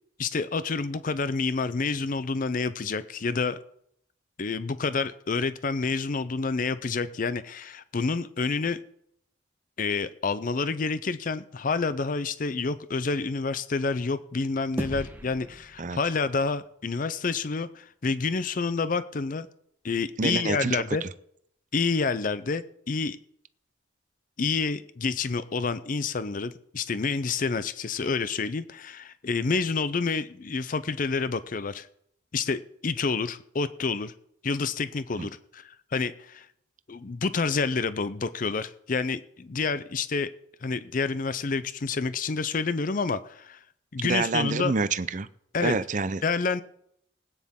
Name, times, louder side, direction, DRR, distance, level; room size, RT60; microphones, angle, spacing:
voice 1, 0.2-3.6 4.4-8.8 9.8-19.5 19.8-21.0 21.7-23.2 24.4-31.9 32.3-34.1 34.4-36.5 36.9-40.3 40.6-43.6 43.9-44.7 45.5-45.8 46.2-46.6, left 4 dB, 45° left, 14 dB, 0.5 m, -28 dB
sound 1, 14.8-17.4, equal, 10° right, 1.0 m, -39 dB
voice 2, 20.2-21.1 35.2-35.3 44.0-45.3 45.6-46.2, right 4 dB, 40° right, 14 dB, 0.6 m, -27 dB
20.0 x 9.5 x 3.7 m, 0.71 s
head